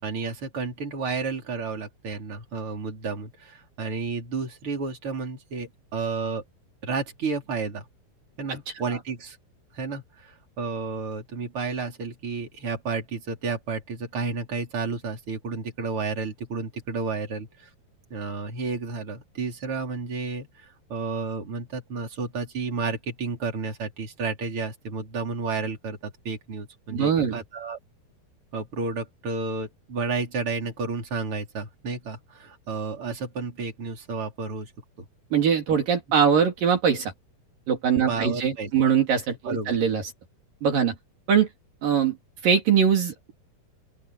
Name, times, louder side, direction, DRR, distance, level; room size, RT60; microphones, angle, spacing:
voice 1, 0.0-6.4 6.8-7.8 8.4-9.4 9.7-17.7 18.1-20.5 20.9-27.8 28.5-34.7 35.0-35.1 38.1-38.7 39.4-39.8, right 4 dB, 35° right, 4.8 m, -31 dB
voice 2, 26.9-27.4 35.3-37.1 37.7-40.0 40.6-40.9 41.3-41.5 41.8-42.2 42.4-43.3, right 7 dB, 65° right, 4.4 m, -22 dB
open air
omnidirectional pair, 4.3 m